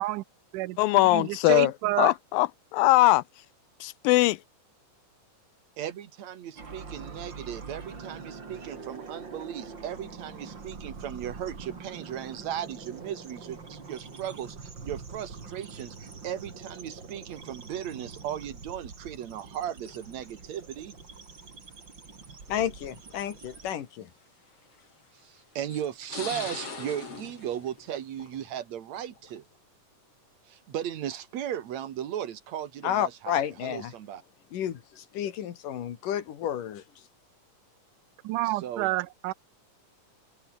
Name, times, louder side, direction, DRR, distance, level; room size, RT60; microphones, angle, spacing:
voice 1, 0.8-3.2 3.8-4.4, left 19 dB, 85° left, 2.4 m, -21 dB
voice 2, 1.5-2.1 38.2-39.3, right 18 dB, 80° right, 2.1 m, -28 dB
voice 3, 5.8-20.9 25.2-29.4 30.5-34.2 38.4-38.9, right 10 dB, 60° right, 2.6 m, -36 dB
sound 1, 6.6-23.7, right 4 dB, 35° right, 3.6 m, -44 dB
sound 2, 19.8-20.3 21.3-21.4 22.5-22.6 23.1-23.2 24.6-25.0 25.7-28.6 29.0-29.4, left 4 dB, 40° left, 6.1 m, -41 dB
voice 4, 22.5-24.1 32.8-33.9 34.5-36.8, left 10 dB, 70° left, 3.5 m, -31 dB
omnidirectional pair, 4.0 m